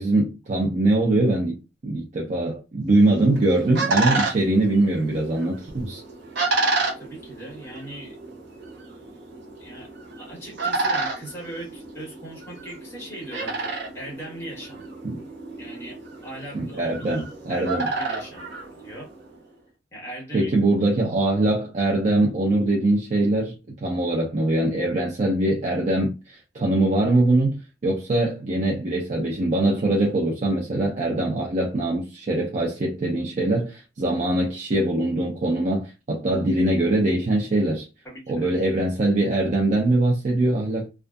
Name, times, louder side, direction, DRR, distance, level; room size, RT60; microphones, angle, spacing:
voice 1, 0.0-1.6 1.8-6.0 15.0-15.2 16.5-17.9 20.3-23.5 23.8-37.8 38.3-40.9, right 2 dB, 40° right, 0.5 m, -22 dB
sound 1, 3.1-19.3, right 3 dB, 65° right, 0.8 m, -30 dB
voice 2, 6.9-8.1 9.6-9.9 10.2-14.8 15.6-18.5 18.8-19.1 19.9-20.5 38.0-38.5, right 1 dB, 15° left, 1.3 m, -39 dB
2.5 x 2.4 x 2.2 m
head